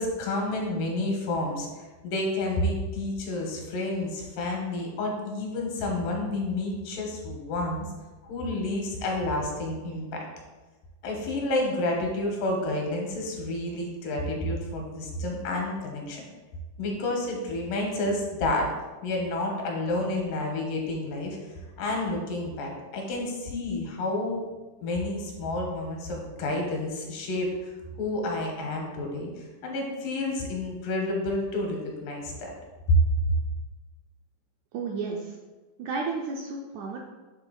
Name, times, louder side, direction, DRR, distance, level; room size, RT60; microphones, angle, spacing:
voice 1, 0.0-1.7 2.0-7.9 8.2-10.3 11.0-16.2 16.8-18.7 19.0-21.5 21.8-24.5 24.8-27.7 28.0-32.5 32.9-33.0, left 1 dB, 85° left, 1 dB, 2.7 m, -29 dB
voice 2, 34.7-35.4 35.8-37.0, right 4 dB, 80° right, 0 dB, 1.7 m, -32 dB
7.9 x 3.5 x 3.8 m, 1.2 s
omnidirectional pair, 3.9 m